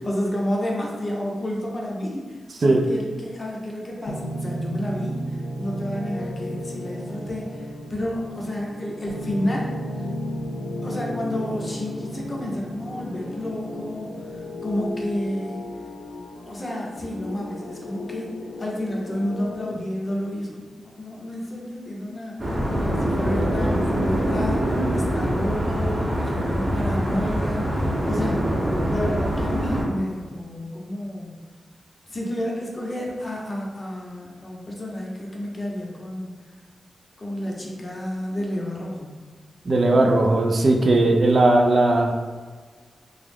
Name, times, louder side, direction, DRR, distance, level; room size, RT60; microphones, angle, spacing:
voice 1, 0.0-9.7 10.8-15.6 16.5-28.4 28.9-31.4 32.1-36.4 37.2-39.2, left 1 dB, 40° left, -2 dB, 0.6 m, -30 dB
sound 1, 4.1-19.7, equal, 80° left, 0.3 m, -34 dB
sound 2, 22.4-29.8, equal, 30° right, 0.7 m, -24 dB
voice 2, 39.6-42.1, right 2 dB, 60° right, 2 dB, 0.3 m, -18 dB
2.3 x 2.0 x 3.2 m, 1.5 s
cardioid pair, 60°, 0 cm